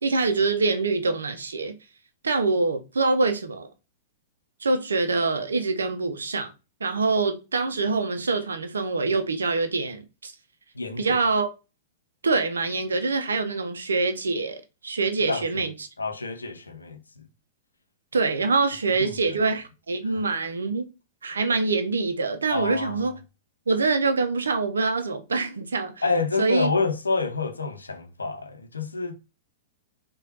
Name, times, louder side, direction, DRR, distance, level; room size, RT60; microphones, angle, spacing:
voice 1, 0.0-1.7 2.2-3.7 4.6-6.5 6.8-10.3 11.0-11.5 12.2-15.9 18.1-20.9 21.2-23.1 23.7-25.9 26.4-26.7, right 3 dB, 75° right, 0.6 m, -25 dB
voice 2, 10.7-11.2 15.3-15.7 16.0-17.2 19.0-19.4 20.1-20.2 22.5-23.1 26.0-29.1, left 4 dB, 80° left, 0.7 m, -28 dB
4.8 x 2.4 x 2.7 m
figure-of-eight pair, 100°, 0 cm